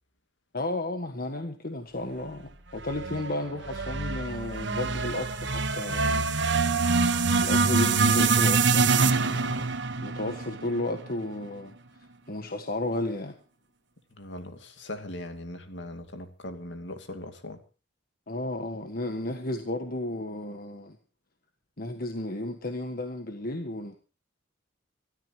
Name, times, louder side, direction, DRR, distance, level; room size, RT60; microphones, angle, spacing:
voice 1, 0.5-6.3 7.4-9.7 10.0-11.7 12.3-13.3 18.3-21.0 21.8-24.0, left 1 dB, 50° left, 6 dB, 1.6 m, -33 dB
sound 1, 2.8-11.1, right 4 dB, 70° right, 1.4 m, -25 dB
voice 2, 14.1-17.6, left 1 dB, 70° left, 7 dB, 2.6 m, -40 dB
24.5 x 13.0 x 3.1 m, 0.35 s
head